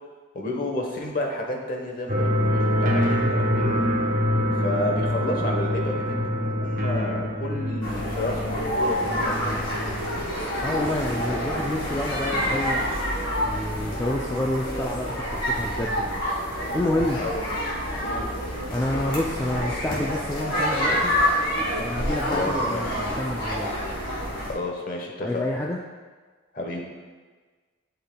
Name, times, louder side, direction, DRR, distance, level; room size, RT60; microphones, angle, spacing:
voice 1, 0.3-3.8 4.6-9.9 17.2-17.6 18.0-18.3 22.3-23.0 24.4-25.4 26.5-26.8, left 1 dB, 45° left, 1 dB, 1.0 m, -31 dB
sound 1, 2.1-10.2, left 1 dB, 45° right, 0.9 m, -25 dB
sound 2, 7.8-24.5, equal, 75° left, 1.9 m, -27 dB
voice 2, 10.6-12.9 13.4-16.2 16.7-17.2 18.7-21.2 21.8-23.8 25.2-25.8, left 1 dB, 15° left, -2 dB, 0.3 m, -28 dB
11.5 x 5.7 x 2.2 m, 1.4 s
head